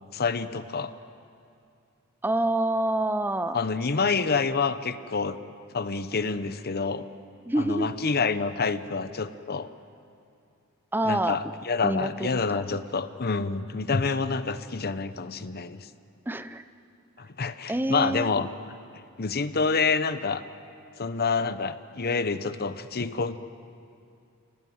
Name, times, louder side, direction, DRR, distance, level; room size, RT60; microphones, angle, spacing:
voice 1, 0.1-0.9 3.5-5.4 5.7-7.1 7.6-9.7 11.0-15.9 17.2-18.5 19.2-20.4 21.0-23.4, left 4 dB, 45° left, 12 dB, 0.9 m, -27 dB
voice 2, 2.2-3.6 7.5-7.9 10.9-11.4 11.8-12.6 16.3-16.6 17.7-18.3, right 1 dB, 10° right, 11 dB, 0.7 m, -27 dB
28.0 x 18.0 x 9.5 m, 2.6 s
head